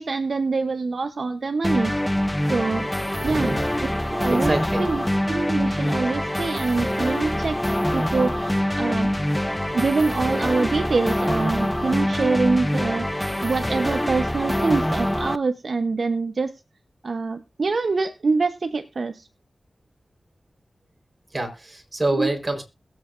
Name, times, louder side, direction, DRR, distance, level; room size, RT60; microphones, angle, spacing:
voice 1, 0.0-2.0 2.5-2.9 3.2-4.5 4.8-7.6 7.9-9.1 9.7-16.5 17.0-19.3 22.1-22.3, right 4 dB, 70° right, 7 dB, 0.8 m, -25 dB
sound 1, 1.6-15.4, left 1 dB, 10° left, 0.7 m, -24 dB
voice 2, 3.2-3.6 4.4-4.8 9.7-9.8 21.3-22.6, right 1 dB, 35° right, 4 dB, 4.1 m, -26 dB
21.5 x 8.2 x 2.5 m, 0.28 s
cardioid pair, 45°, 0 cm